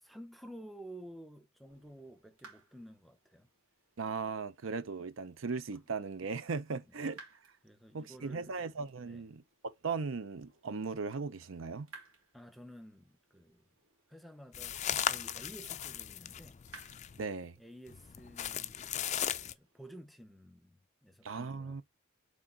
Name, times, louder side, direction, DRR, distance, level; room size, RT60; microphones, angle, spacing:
voice 1, 0.0-3.5 6.8-7.0 7.6-8.6 9.0-9.2 12.3-13.7 14.1-16.6 17.4-21.8, right 1 dB, ahead, 0.7 m, -52 dB
sound 1, 1.6-19.9, right 3 dB, 90° right, 3.1 m, -61 dB
voice 2, 4.0-7.2 7.9-11.9 17.2-17.5 21.2-21.8, right 4 dB, 70° right, 0.6 m, -38 dB
sound 2, 14.5-17.2 17.9-19.5, left 10 dB, 35° left, 0.4 m, -37 dB
6.2 x 3.8 x 4.3 m
head